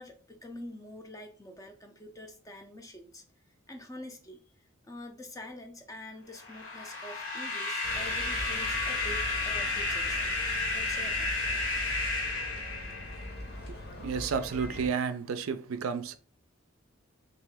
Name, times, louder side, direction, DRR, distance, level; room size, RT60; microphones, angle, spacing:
voice 1, 0.0-3.2 3.7-4.4 4.8-10.3 10.7-11.3, left 1 dB, 15° left, 0.4 m, -46 dB
sound 1, 6.4-13.4, left 3 dB, 85° left, 1.6 m, -32 dB
sound 2, 7.8-14.9, left 1 dB, 45° left, 0.8 m, -41 dB
voice 2, 13.7-16.2, right 6 dB, 75° right, 0.4 m, -32 dB
3.1 x 2.8 x 3.4 m
head